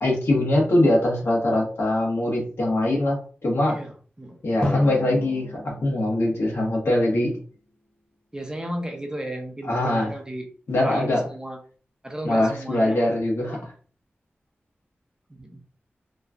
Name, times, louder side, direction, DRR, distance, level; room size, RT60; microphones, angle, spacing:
voice 1, 0.0-3.8 4.4-7.3 9.6-10.1 10.7-11.2 12.2-13.7, left 1 dB, 75° left, -2 dB, 1.2 m, -22 dB
voice 2, 3.7-4.4 7.1-7.2 8.3-10.5 10.8-11.6 12.0-13.0 15.4-15.6, right 1 dB, 20° right, 3 dB, 0.7 m, -34 dB
Drum, 4.6-7.5, left 1 dB, 20° left, 0.9 m, -33 dB
3.0 x 2.3 x 2.4 m, 0.42 s
cardioid pair, 50°, 4 cm